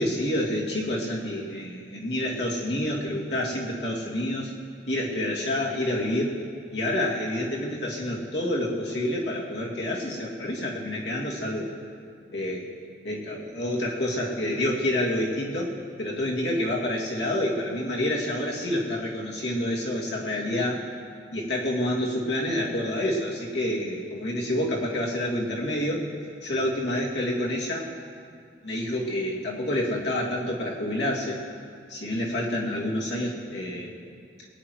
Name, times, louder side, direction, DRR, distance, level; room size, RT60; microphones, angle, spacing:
voice 1, 0.0-4.5 4.9-6.3 6.7-11.7 12.3-12.7 13.0-20.8 21.3-26.1 26.4-27.9 28.6-31.4 31.9-34.0, left 1 dB, 75° left, -3 dB, 2.6 m, -28 dB
22.0 x 9.7 x 4.8 m, 2.2 s
head